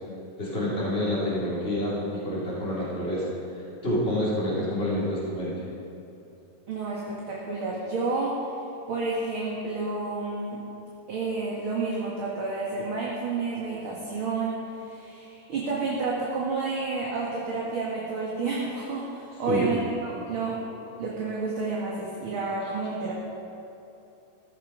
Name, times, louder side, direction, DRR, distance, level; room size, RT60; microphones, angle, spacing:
voice 1, 0.4-3.3 3.8-5.6 19.5-19.7, left 1 dB, 20° left, -8 dB, 4.7 m, -28 dB
voice 2, 6.7-8.4 8.9-10.6 11.1-20.6 21.0-23.1, right 3 dB, 45° right, -5 dB, 2.6 m, -30 dB
16.0 x 15.5 x 5.3 m, 2.9 s
omnidirectional pair, 3.4 m